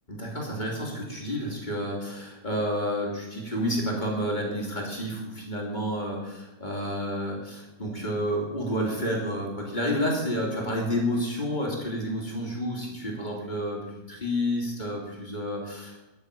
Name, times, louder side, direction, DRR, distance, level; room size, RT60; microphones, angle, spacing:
voice 1, 0.1-13.8 14.1-16.0, equal, 15° left, -2 dB, 2.7 m, -30 dB
12.0 x 6.5 x 8.8 m, 1.0 s
omnidirectional pair, 3.4 m